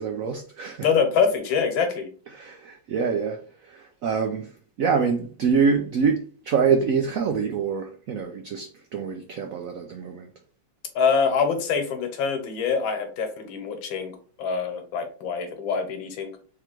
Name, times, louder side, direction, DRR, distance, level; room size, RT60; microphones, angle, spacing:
voice 1, 0.0-0.9 2.3-4.5 4.8-10.3, right 5 dB, 85° right, 4 dB, 0.7 m, -25 dB
voice 2, 0.8-2.1 10.9-16.3, left 6 dB, 80° left, 6 dB, 1.7 m, -25 dB
3.7 x 3.0 x 4.4 m, 0.41 s
omnidirectional pair, 2.1 m